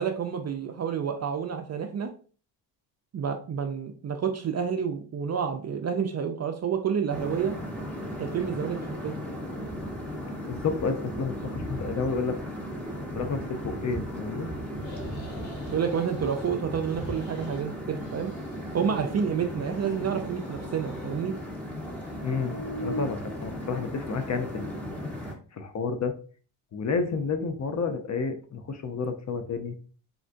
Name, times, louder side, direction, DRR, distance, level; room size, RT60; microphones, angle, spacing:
voice 1, 0.0-2.1 3.1-7.5 8.2-9.2 15.7-18.3 18.7-21.3, right 7 dB, 35° right, 0.4 m, -29 dB
sound 1, 7.1-25.3, equal, 5° left, 1.0 m, -36 dB
voice 2, 10.5-12.4 13.1-14.5 22.2-22.6 22.8-24.8 25.5-26.1 26.7-29.8, left 4 dB, 35° left, 0.5 m, -30 dB
sound 2, 14.8-16.5 16.8-17.6 17.9-19.3 19.6-21.2 21.6-23.1, equal, 65° left, 1.3 m, -43 dB
3.7 x 2.1 x 2.5 m
supercardioid pair, 70°, 47 cm